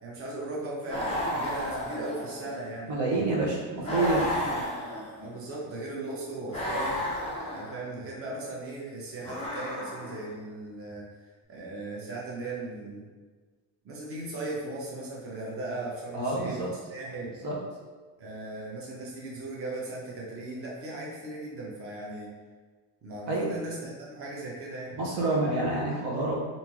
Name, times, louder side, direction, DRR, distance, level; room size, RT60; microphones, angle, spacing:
voice 1, 0.0-2.9 3.4-3.6 4.4-4.6 5.2-7.1 7.5-11.0 11.5-13.0 13.8-17.3 18.2-22.3 23.0-25.0, right 2 dB, 30° right, -4 dB, 0.9 m, -38 dB
sound 1, 0.9-2.6 3.8-5.4 6.5-7.9 9.2-10.3, equal, 15° left, 1.0 m, -32 dB
voice 2, 2.9-4.3 16.1-16.7 17.4-17.5 23.3-23.5 25.0-26.4, right 2 dB, 65° right, -3 dB, 1.0 m, -27 dB
3.4 x 2.7 x 3.0 m, 1.4 s
cardioid pair, 115°, 44 cm